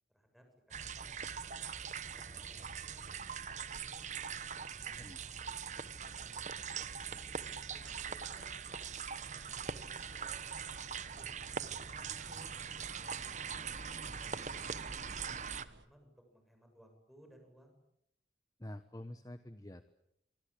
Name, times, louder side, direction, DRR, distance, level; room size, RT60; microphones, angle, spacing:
voice 1, 0.1-0.4 0.9-1.1 1.6-1.7 2.1-4.1 4.4-7.2 7.7-8.6 9.1-10.7 11.0-12.5 13.0-14.9 15.2-17.8, equal, ahead, 4 dB, 7.6 m, -64 dB
sound 1, 0.7-15.7, right 6 dB, 40° right, 1.1 m, -42 dB
sound 2, 7.8-15.9, right 2 dB, 85° right, 1.8 m, -58 dB
voice 2, 18.6-19.9, left 1 dB, 20° left, 10 dB, 1.1 m, -47 dB
26.0 x 25.0 x 8.6 m, 0.78 s
head